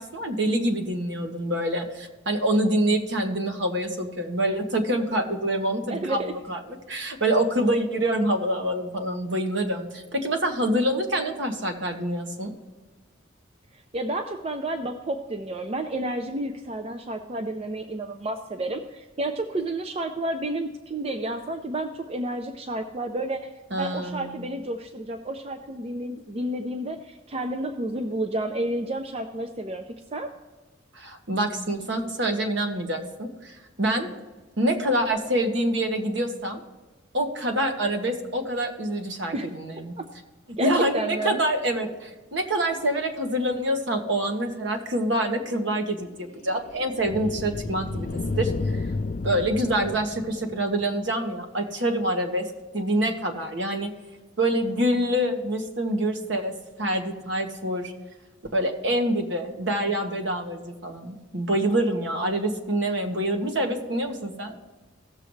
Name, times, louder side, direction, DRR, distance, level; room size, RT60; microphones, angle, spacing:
voice 1, 0.0-12.5 23.7-24.4 30.9-34.1 34.6-36.6 37.1-39.9 40.6-48.1 48.4-48.9 49.2-52.5 52.7-53.9 54.4-57.9 58.5-64.5, right 1 dB, 65° right, 4 dB, 1.4 m, -26 dB
voice 2, 5.9-6.3 13.7-23.5 23.8-29.8 30.1-30.3 39.3-39.5 40.0-40.1 40.6-41.4, right 1 dB, 30° right, 7 dB, 0.5 m, -30 dB
sound 1, 45.4-50.8, left 3 dB, 40° left, 0.4 m, -32 dB
17.0 x 6.8 x 3.2 m, 1.2 s
head